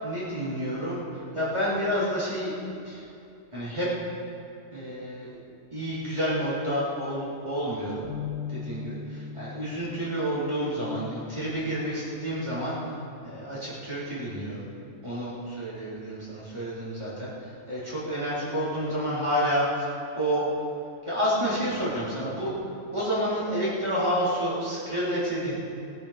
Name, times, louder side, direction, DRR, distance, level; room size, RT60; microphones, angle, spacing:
voice 1, 0.0-2.5 2.8-3.0 3.5-3.9 4.7-5.3 5.7-8.0 8.5-12.8 13.2-14.7 15.0-20.4 21.1-22.5 22.9-25.6, equal, 20° right, -11 dB, 3.9 m, -29 dB
Bass guitar, 8.0-14.3, left 6 dB, 70° left, 3.5 m, -41 dB
19.5 x 10.5 x 5.1 m, 2.6 s
omnidirectional pair, 1.3 m